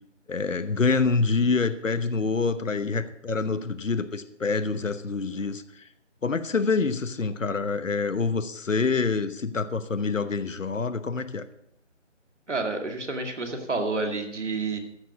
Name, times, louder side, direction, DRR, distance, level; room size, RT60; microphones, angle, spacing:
voice 1, 0.3-5.6 6.2-11.5, left 4 dB, 80° left, 12 dB, 1.1 m, -26 dB
voice 2, 12.5-14.8, right 3 dB, 65° right, 4 dB, 2.4 m, -29 dB
14.5 x 6.5 x 6.2 m, 0.76 s
figure-of-eight pair, 180°, 38 cm